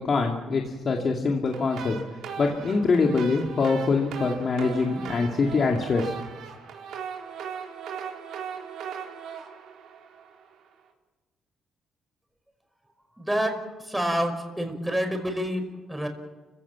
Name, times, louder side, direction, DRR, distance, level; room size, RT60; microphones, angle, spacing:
voice 1, 0.0-2.0 2.4-6.1, left 4 dB, 45° left, 1 dB, 2.4 m, -24 dB
sound 1, 1.5-10.6, right 7 dB, 80° right, 3.8 m, -39 dB
voice 2, 13.2-16.1, equal, 5° right, 5 dB, 5.3 m, -28 dB
30.0 x 16.5 x 7.4 m, 1.3 s
cardioid pair, 90°, 0 cm